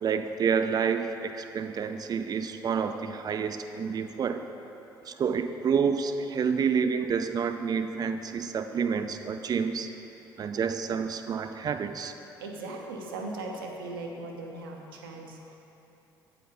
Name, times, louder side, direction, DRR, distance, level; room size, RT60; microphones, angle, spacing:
voice 1, 0.0-4.4 5.1-9.9 10.4-12.1, right 6 dB, 35° right, 9 dB, 0.4 m, -29 dB
voice 2, 12.4-15.6, right 2 dB, 75° right, 1 dB, 0.6 m, -38 dB
9.1 x 3.9 x 4.2 m, 3.0 s
figure-of-eight pair, 50°, 12 cm